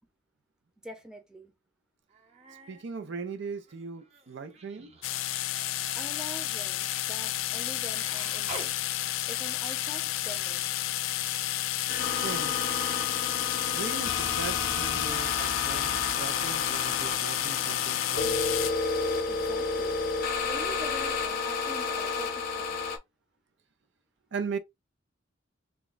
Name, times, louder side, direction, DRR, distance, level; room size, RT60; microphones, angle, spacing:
voice 1, 0.8-1.5 5.9-8.9 9.3-10.7 19.2-20.0 20.4-23.0, equal, 5° right, 0.7 m, -45 dB
Human voice, 2.1-2.9 3.2-8.8 10.4-10.5, right 4 dB, 35° right, 0.9 m, -48 dB
voice 2, 2.7-5.0 12.1-12.6 13.7-18.4 24.3-24.6, right 5 dB, 65° right, 0.5 m, -38 dB
sound 1, 5.0-18.7, left 14 dB, 90° left, 0.4 m, -31 dB
sound 2, 11.9-23.0, left 4 dB, 50° left, 0.7 m, -31 dB
3.5 x 2.2 x 3.9 m
head